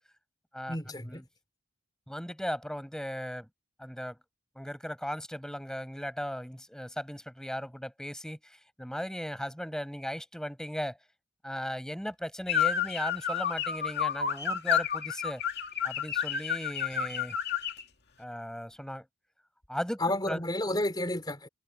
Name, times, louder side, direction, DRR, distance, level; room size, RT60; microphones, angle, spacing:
voice 1, 0.7-1.2 20.0-21.5, left 1 dB, 20° left, 3.9 m, -31 dB
voice 2, 2.1-3.5 3.8-4.2 4.6-8.4 8.8-11.0 11.4-15.4 15.8-17.4 18.2-19.0 19.7-20.0 20.3-20.4, equal, 5° left, 6.2 m, -37 dB
sound 1, 12.5-17.8, left 8 dB, 50° left, 2.1 m, -30 dB
head